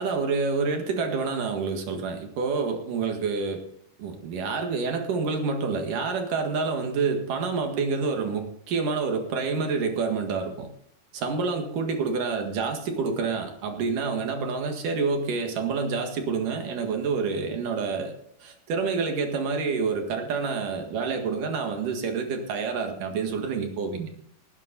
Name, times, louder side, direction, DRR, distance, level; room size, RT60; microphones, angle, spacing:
voice 1, 0.0-3.6 4.0-10.7 11.1-18.1 18.4-24.1, right 4 dB, 70° right, 4 dB, 3.3 m, -28 dB
18.0 x 10.0 x 4.1 m, 0.67 s
omnidirectional pair, 4.0 m